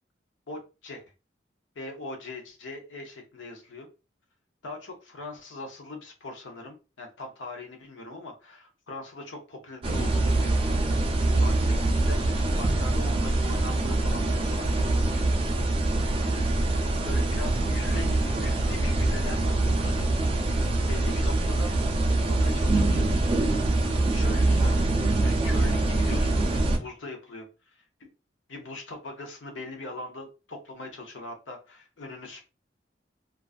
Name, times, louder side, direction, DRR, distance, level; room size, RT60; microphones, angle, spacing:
voice 1, 0.5-1.0 1.8-3.9 4.6-10.6 11.4-15.5 17.1-20.1 20.9-21.7 22.2-23.4 24.1-24.9 25.2-27.9 28.5-32.4, left 2 dB, 80° left, 3 dB, 0.6 m, -41 dB
sound 1, 9.8-26.8, right 2 dB, 30° right, 0.3 m, -24 dB
2.3 x 2.3 x 2.3 m, 0.30 s
head